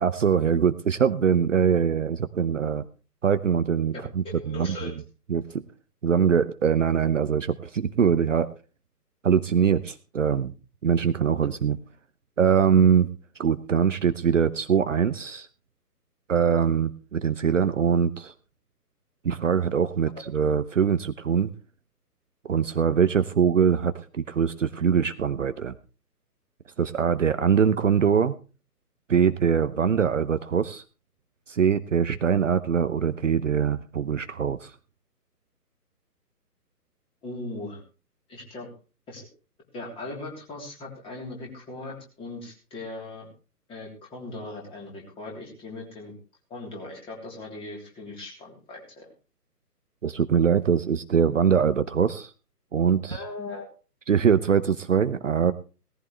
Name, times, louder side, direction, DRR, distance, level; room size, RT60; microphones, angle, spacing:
voice 1, 0.0-2.8 3.2-4.9 5.3-5.6 6.0-8.5 9.2-10.5 10.8-11.8 12.4-13.1 13.4-15.5 16.3-18.3 19.2-21.5 22.4-25.7 26.8-28.3 29.1-30.8 31.5-34.7 50.0-52.3 52.7-53.2 54.1-55.5, right 7 dB, 50° right, 11 dB, 0.9 m, -23 dB
voice 2, 3.9-4.9 37.2-37.8 38.3-38.7 39.1-39.3 39.7-43.3 43.7-46.1 46.5-49.1 53.1-53.7, left 2 dB, 10° left, -1 dB, 3.4 m, -39 dB
18.0 x 14.5 x 3.3 m, 0.35 s
figure-of-eight pair, 140°, 48 cm